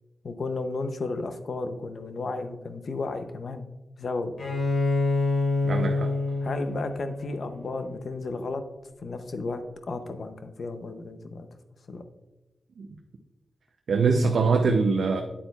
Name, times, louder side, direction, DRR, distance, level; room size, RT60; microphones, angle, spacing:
voice 1, 0.2-3.7 4.0-4.3 6.4-8.6 9.0-9.6 9.9-11.5 11.9-12.0, left 3 dB, 60° left, 8 dB, 0.6 m, -33 dB
Bowed string instrument, 4.4-8.0, left 3 dB, 75° left, 2.3 m, -27 dB
voice 2, 5.6-6.1 12.8-12.9 13.9-15.2, right 4 dB, 85° right, 3 dB, 0.5 m, -23 dB
8.6 x 8.1 x 2.3 m, 1.0 s
wide cardioid pair, 130°, 0 cm